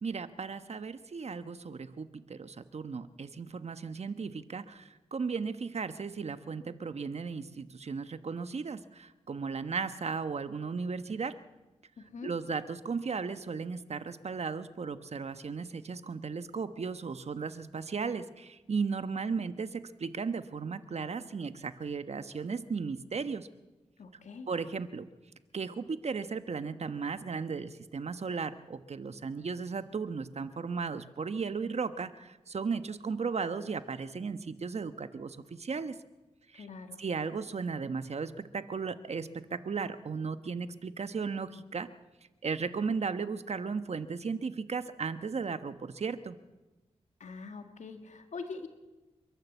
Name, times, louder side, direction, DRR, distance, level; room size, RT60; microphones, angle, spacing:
voice 1, 0.0-11.4 12.2-23.5 24.5-25.1 25.5-36.0 36.5-36.7 37.0-41.9 42.4-46.4, right 5 dB, 65° right, 11 dB, 1.2 m, -36 dB
voice 2, 12.0-12.3 24.0-24.5 36.6-37.0 47.2-48.7, left 4 dB, 85° left, 6 dB, 2.1 m, -43 dB
29.0 x 11.5 x 8.2 m, 1.1 s
cardioid pair, 60°, 12 cm